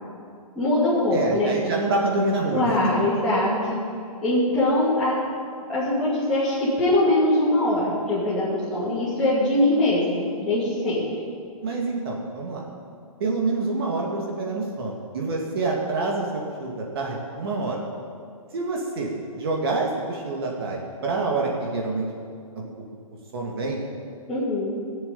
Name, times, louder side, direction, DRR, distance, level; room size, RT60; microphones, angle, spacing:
voice 1, 0.6-1.5 2.5-3.8 4.2-5.2 5.7-11.0 24.3-24.7, left 1 dB, 5° left, -13 dB, 2.4 m, -22 dB
voice 2, 1.1-2.8 11.6-12.6 13.2-17.8 18.5-22.1 22.6-22.7 23.3-23.8, right 3 dB, 40° right, -1 dB, 2.1 m, -27 dB
16.5 x 7.4 x 9.0 m, 2.3 s
hypercardioid pair, 175°, 19 cm